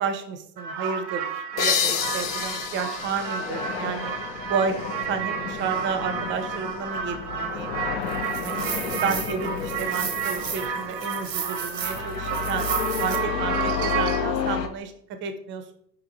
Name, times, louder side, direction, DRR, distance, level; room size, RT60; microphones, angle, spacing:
voice 1, 0.0-4.1 4.5-4.8 5.1-7.7 8.3-12.7 13.0-14.9 15.2-15.7, right 6 dB, 25° right, 8 dB, 0.4 m, -31 dB
sound 1, 0.6-14.2, right 7 dB, 80° right, 0.8 m, -31 dB
sound 2, 1.5-14.7, left 7 dB, 85° left, 0.5 m, -32 dB
sound 3, 1.6-5.0, left 8 dB, 35° left, 0.5 m, -29 dB
4.7 x 3.0 x 2.5 m, 0.73 s
figure-of-eight pair, 70°, 49 cm